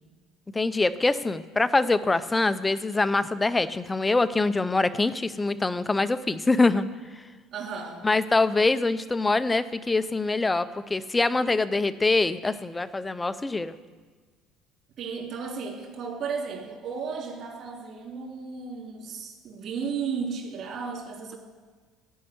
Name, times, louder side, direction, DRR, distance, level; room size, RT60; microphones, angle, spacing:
voice 1, 0.5-6.9 7.1-7.3 8.0-13.7, left 3 dB, 10° left, 13 dB, 0.4 m, -24 dB
voice 2, 7.5-8.1 15.0-21.4, right 5 dB, 40° right, -1 dB, 3.1 m, -34 dB
16.0 x 5.5 x 9.3 m, 1.5 s
cardioid pair, 175°, 0 cm